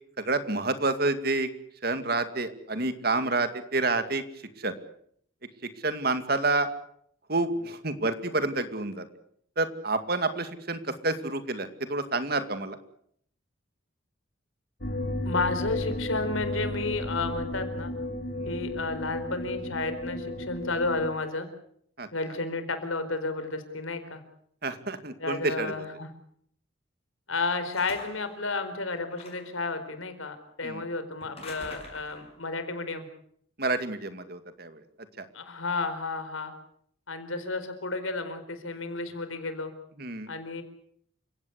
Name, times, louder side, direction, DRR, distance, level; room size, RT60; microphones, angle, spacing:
voice 1, 0.2-1.5 1.8-4.2 4.6-4.7 5.8-6.7 7.3-9.1 9.6-12.8 18.3-18.5 22.0-22.1 24.6-25.7 30.6-30.8 33.6-34.8 35.2-35.3 40.0-40.3, right 2 dB, 50° right, 10 dB, 2.3 m, -28 dB
sound 1, 14.8-21.1, left 1 dB, 55° left, 3.9 m, -33 dB
voice 2, 15.2-17.9 18.5-21.5 22.1-24.2 25.2-26.1 27.3-33.1 35.3-36.5 37.1-39.7 40.3-40.6, left 3 dB, 85° left, 9 dB, 4.5 m, -32 dB
sound 2, 27.7-28.3 29.1-29.6 31.2-32.3, left 3 dB, 30° left, 6.8 m, -45 dB
29.0 x 17.0 x 8.2 m, 0.67 s
head